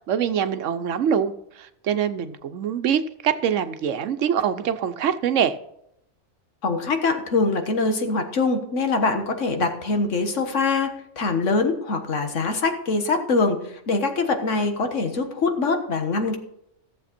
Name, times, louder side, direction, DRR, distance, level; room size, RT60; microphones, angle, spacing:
voice 1, 0.1-5.6, right 8 dB, 85° right, 11 dB, 1.1 m, -24 dB
voice 2, 6.6-16.4, left 3 dB, 85° left, 6 dB, 1.7 m, -23 dB
14.5 x 7.4 x 4.3 m, 0.78 s
omnidirectional pair, 1.2 m